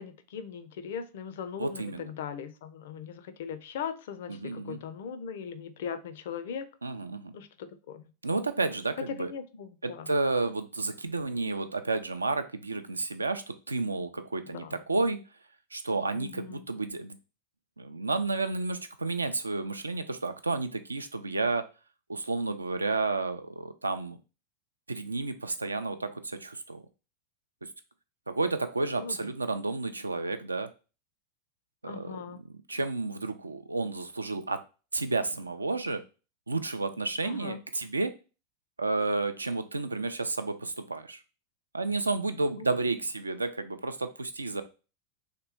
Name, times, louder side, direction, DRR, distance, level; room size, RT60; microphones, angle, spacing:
voice 1, 0.0-6.7 7.3-8.1 9.2-10.1 14.5-14.8 16.2-16.7 29.0-29.2 31.8-32.4 37.2-37.6 42.6-42.7, left 7 dB, 55° left, 12 dB, 0.4 m, -39 dB
voice 2, 1.6-2.1 4.3-4.8 6.8-7.4 8.2-9.3 9.8-15.2 15.7-17.2 17.8-21.6 22.1-24.2 24.9-26.8 27.6-27.7 28.3-30.7 31.8-34.6 34.9-36.0 36.5-38.1 38.8-41.2 41.7-44.6, right 3 dB, 80° right, 10 dB, 0.4 m, -31 dB
3.2 x 2.9 x 4.4 m, 0.34 s
figure-of-eight pair, 90°, 0 cm